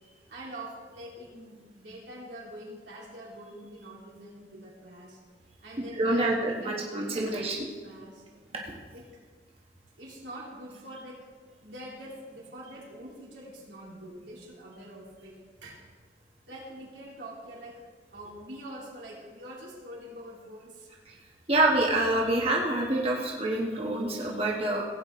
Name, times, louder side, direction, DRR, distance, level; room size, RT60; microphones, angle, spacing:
voice 1, 0.3-5.2 5.6-8.2 8.9-9.2 10.0-11.2 11.6-15.8 16.5-17.8 18.1-20.9, right 1 dB, 90° right, -5 dB, 3.4 m, -45 dB
voice 2, 5.9-7.6 8.6-8.8 21.1-21.2 21.5-24.8, right 2 dB, 35° right, -2 dB, 1.3 m, -26 dB
16.5 x 8.6 x 3.7 m, 1.5 s
head